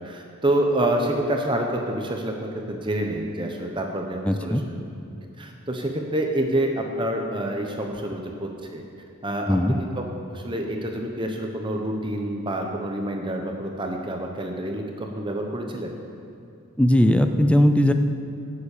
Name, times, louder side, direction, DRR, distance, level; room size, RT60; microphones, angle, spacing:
voice 1, 0.0-4.8 5.4-8.8 9.2-10.0 10.3-15.9, right 1 dB, 20° right, 2 dB, 0.9 m, -27 dB
voice 2, 4.3-4.6 9.5-9.8 16.8-17.9, left 1 dB, 5° left, 7 dB, 0.5 m, -18 dB
17.0 x 7.3 x 6.7 m, 2.5 s
head